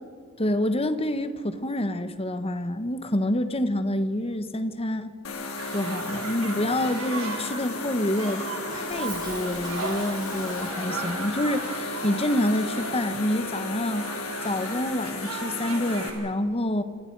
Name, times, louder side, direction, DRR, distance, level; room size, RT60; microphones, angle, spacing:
voice 1, 0.4-5.1 5.7-8.4 8.7-14.1 14.4-16.8, left 1 dB, 30° left, 11 dB, 1.2 m, -27 dB
sound 1, 5.2-16.1, left 3 dB, 75° left, 3.8 m, -34 dB
sound 2, 5.6-16.2, right 4 dB, 70° right, 4.0 m, -37 dB
Cough, 8.1-11.1, right 2 dB, 20° right, 5.2 m, -41 dB
29.5 x 25.0 x 4.8 m, 2.1 s
head